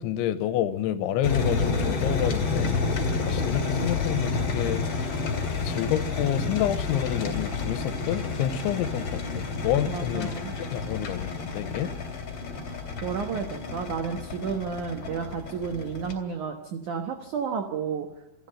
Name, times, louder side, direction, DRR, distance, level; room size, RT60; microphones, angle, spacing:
voice 1, 0.0-2.7 3.2-4.9 5.6-10.3 10.7-11.9, left 10 dB, 85° left, 13 dB, 3.2 m, -28 dB
sound 1, 1.2-16.1, left 4 dB, 35° left, 3.3 m, -30 dB
voice 2, 9.8-10.5 13.0-18.1, right 6 dB, 85° right, 5 dB, 1.7 m, -32 dB
27.5 x 11.5 x 8.9 m, 1.2 s
omnidirectional pair, 5.4 m